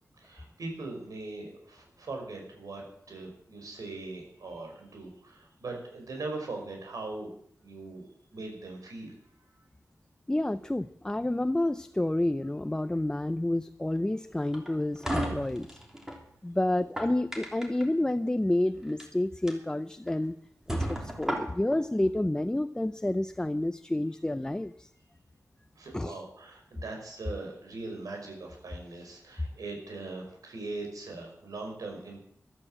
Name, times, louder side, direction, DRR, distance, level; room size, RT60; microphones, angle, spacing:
voice 1, 0.2-7.3 7.6-8.1 8.3-9.2 25.8-32.2, right 3 dB, 80° right, 2 dB, 5.6 m, -40 dB
voice 2, 10.3-15.8 16.4-20.4 20.7-24.9 25.9-26.2, left 1 dB, 10° left, 11 dB, 0.6 m, -29 dB
sound 1, 14.5-16.2 16.7-17.8 18.8-19.0 19.5-19.6 20.1-20.2 20.7-21.8, right 1 dB, 10° right, 3.2 m, -34 dB
14.5 x 12.5 x 7.5 m, 0.68 s
wide cardioid pair, 120°, 6 cm